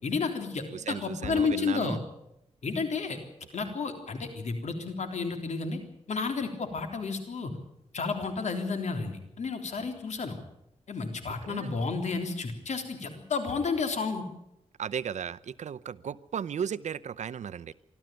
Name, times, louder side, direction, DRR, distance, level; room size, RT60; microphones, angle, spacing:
voice 1, 0.0-2.0 2.6-3.2 3.5-5.8 6.1-7.5 7.9-10.4 10.9-14.2, left 4 dB, 75° left, 6 dB, 3.6 m, -31 dB
voice 2, 0.7-2.0 11.4-11.8 14.8-17.7, right 8 dB, 85° right, 16 dB, 0.7 m, -35 dB
24.5 x 13.5 x 9.1 m, 0.82 s
wide cardioid pair, 85°, 12 cm